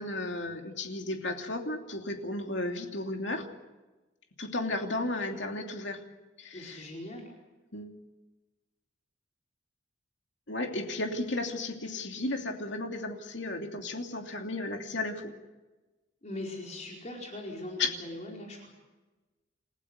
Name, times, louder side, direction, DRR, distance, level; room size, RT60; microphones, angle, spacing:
voice 1, 0.0-3.5 4.4-6.0 6.4-6.8 7.7-8.0 10.5-15.3 17.8-17.9, left 2 dB, 65° left, 3 dB, 2.9 m, -34 dB
voice 2, 6.5-7.3 16.2-18.7, left 1 dB, 40° left, -1 dB, 4.8 m, -40 dB
29.0 x 15.5 x 8.2 m, 1.2 s
head